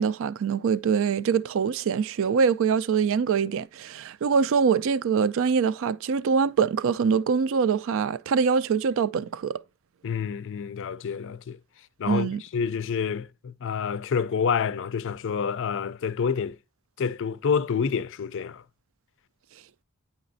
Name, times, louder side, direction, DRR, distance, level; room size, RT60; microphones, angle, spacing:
voice 1, 0.0-9.6 12.1-12.4, right 6 dB, 65° right, 0.4 m, -24 dB
voice 2, 10.0-11.6 12.0-16.6 17.0-18.6, left 6 dB, 60° left, 0.4 m, -28 dB
9.4 x 4.0 x 2.6 m
head